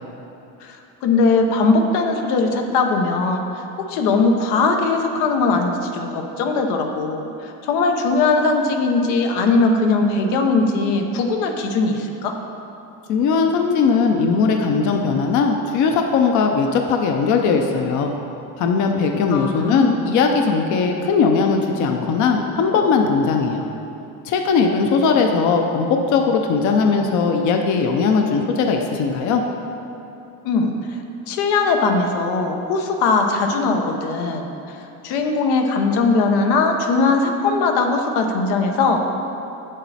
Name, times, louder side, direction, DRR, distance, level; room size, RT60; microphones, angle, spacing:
voice 1, 0.6-12.4 19.3-19.9 30.4-31.0 31.3-34.8 35.0-39.1, left 3 dB, 85° left, 4 dB, 1.0 m, -20 dB
voice 2, 13.1-18.1 18.6-23.6 24.2-29.4, left 5 dB, 50° left, 3 dB, 0.7 m, -19 dB
8.2 x 7.5 x 4.2 m, 2.9 s
cardioid pair, 145°, 37 cm